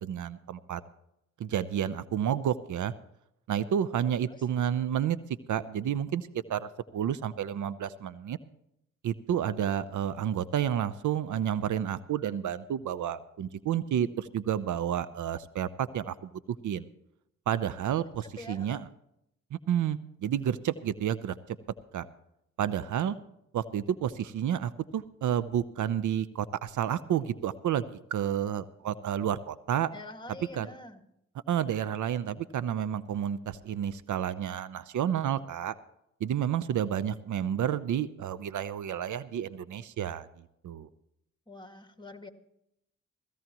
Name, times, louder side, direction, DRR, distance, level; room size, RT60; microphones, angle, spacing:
voice 1, 0.0-0.8 1.4-2.9 3.5-5.2 5.5-8.4 9.0-16.9 17.5-18.9 19.5-21.6 21.9-22.1 22.6-23.2 23.5-27.9 28.1-29.9 30.5-30.7 31.5-35.7 36.2-40.9, right 9 dB, 70° right, 16 dB, 0.8 m, -30 dB
voice 2, 18.4-18.8 29.9-31.0 41.5-42.3, left 2 dB, 15° left, 7 dB, 2.0 m, -45 dB
17.5 x 16.5 x 3.0 m, 0.79 s
supercardioid pair, 50°, 31 cm